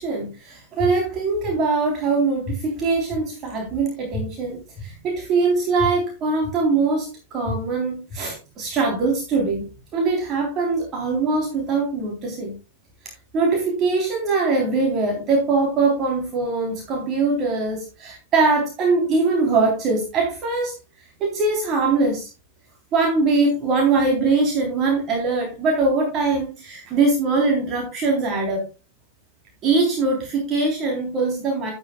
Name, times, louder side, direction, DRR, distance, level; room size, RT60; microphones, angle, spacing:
voice 1, 0.0-9.6 9.9-12.5 13.3-20.7 21.2-22.3 22.9-28.7 29.6-31.7, right 3 dB, 30° right, 1 dB, 3.5 m, -22 dB
sound 1, 0.8-0.9 1.4-1.5 2.5-2.6 3.1-3.2 4.1-4.2 4.8-4.9 5.8-5.9 6.4-6.5 7.4-7.5 8.1-8.2, left 6 dB, 25° left, 6.5 m, -30 dB
11.5 x 11.5 x 2.3 m, 0.28 s
figure-of-eight pair, 90°, 0 cm